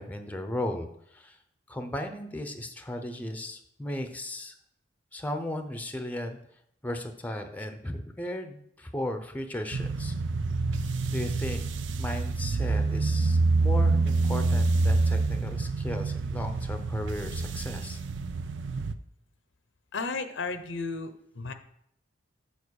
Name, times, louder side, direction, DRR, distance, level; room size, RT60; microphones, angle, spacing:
voice 1, 0.0-1.4 1.7-4.6 5.1-6.4 6.8-10.1 10.7-10.8 11.1-11.7 12.0-18.0, left 1 dB, 10° left, 7 dB, 0.7 m, -35 dB
sound 1, 9.7-18.9, right 3 dB, 70° right, 0.5 m, -27 dB
voice 2, 19.9-21.5, left 4 dB, 75° left, 9 dB, 0.8 m, -34 dB
7.3 x 5.2 x 6.4 m, 0.74 s
head